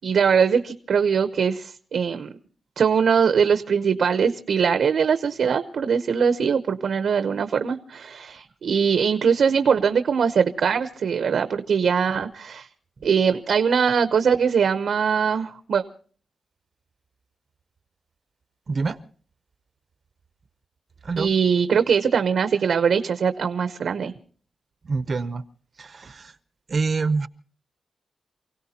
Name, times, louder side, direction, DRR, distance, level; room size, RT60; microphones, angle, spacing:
voice 1, 0.0-2.3 2.8-12.7 13.0-15.8 21.2-24.1, right 6 dB, 80° right, 9 dB, 0.8 m, -21 dB
voice 2, 18.7-19.0 21.0-21.3 24.8-25.4 25.8-26.3 26.7-27.3, right 4 dB, 45° right, 13 dB, 0.6 m, -26 dB
28.5 x 17.0 x 2.8 m, 0.43 s
wide cardioid pair, 145°, 0 cm